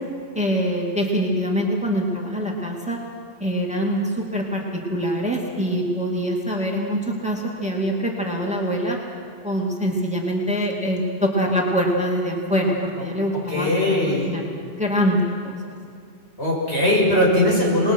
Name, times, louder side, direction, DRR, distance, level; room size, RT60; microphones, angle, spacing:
voice 1, 0.3-3.0 3.4-9.0 9.4-13.7 14.2-15.6, equal, 5° right, -1 dB, 2.3 m, -24 dB
voice 2, 13.5-14.3 16.4-17.9, left 1 dB, 65° left, -4 dB, 6.5 m, -19 dB
27.0 x 20.5 x 6.3 m, 2.2 s
omnidirectional pair, 1.1 m